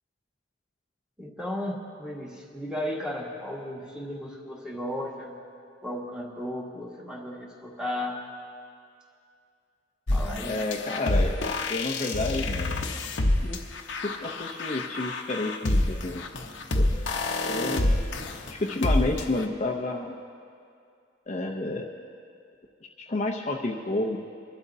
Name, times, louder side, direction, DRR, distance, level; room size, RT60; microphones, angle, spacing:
voice 1, 1.2-5.3 5.8-8.2 10.1-10.6, left 1 dB, 5° right, -3 dB, 1.7 m, -35 dB
sound 1, 10.1-19.4, left 1 dB, 65° left, 0.9 m, -27 dB
voice 2, 10.4-12.8 13.4-13.6 13.9-16.2 16.8-17.1 17.4-18.1 18.5-20.2 21.3-21.9 23.1-24.2, left 2 dB, 35° left, 0 dB, 0.7 m, -30 dB
24.0 x 12.5 x 2.7 m, 2.3 s
head